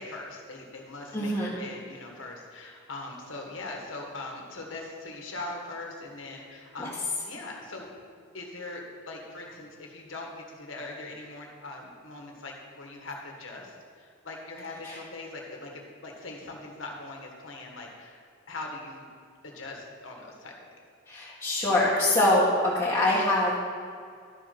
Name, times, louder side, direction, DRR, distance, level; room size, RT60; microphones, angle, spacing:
voice 1, 0.0-6.9 7.2-7.9 8.2-18.2 18.5-19.1 19.4-20.5, left 2 dB, 85° left, 0 dB, 1.7 m, -41 dB
voice 2, 1.1-1.6 6.8-6.9 14.8-15.0 21.1-23.6, left 1 dB, 20° left, -9 dB, 1.8 m, -24 dB
12.0 x 5.3 x 5.9 m, 2.2 s
head